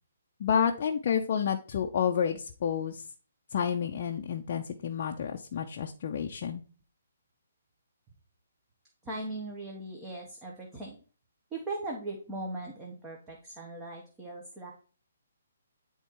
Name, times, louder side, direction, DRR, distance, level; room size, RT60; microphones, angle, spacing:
voice 1, 0.4-3.0 3.5-6.6, left 8 dB, 35° left, 2 dB, 0.6 m, -30 dB
voice 2, 9.0-11.0 11.5-14.7, right 2 dB, 10° right, -1 dB, 0.9 m, -39 dB
9.7 x 3.6 x 4.5 m, 0.39 s
hypercardioid pair, 170°, 0 cm